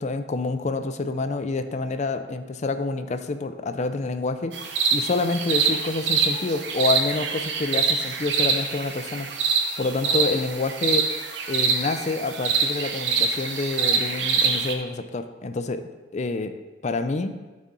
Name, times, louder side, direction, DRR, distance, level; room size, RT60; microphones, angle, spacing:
voice 1, 0.0-4.5 4.9-9.3 9.8-11.1 11.5-15.8 16.1-16.5 16.8-17.4, left 3 dB, 40° left, 9 dB, 0.4 m, -27 dB
sound 1, 4.5-14.7, right 5 dB, 70° right, 0.8 m, -25 dB
12.0 x 4.3 x 3.7 m, 1.2 s
head